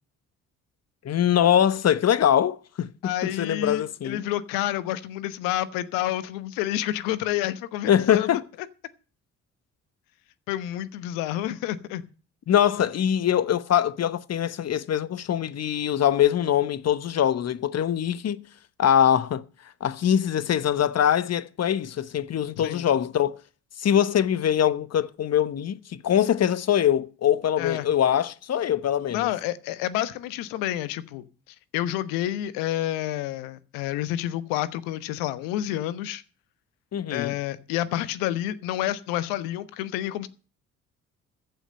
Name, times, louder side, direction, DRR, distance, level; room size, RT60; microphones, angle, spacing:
voice 1, 1.0-4.2 7.9-8.4 12.5-18.4 18.8-19.4 19.8-23.4 23.8-29.3 36.9-37.3, left 10 dB, 50° left, 1.1 m, -23 dB
voice 2, 3.0-8.3 10.5-12.0 22.6-22.9 27.6-27.9 29.1-31.2 31.7-36.2 37.1-40.3, left 13 dB, 80° left, 1.1 m, -29 dB
14.5 x 5.7 x 8.8 m
hypercardioid pair, 55°, 33 cm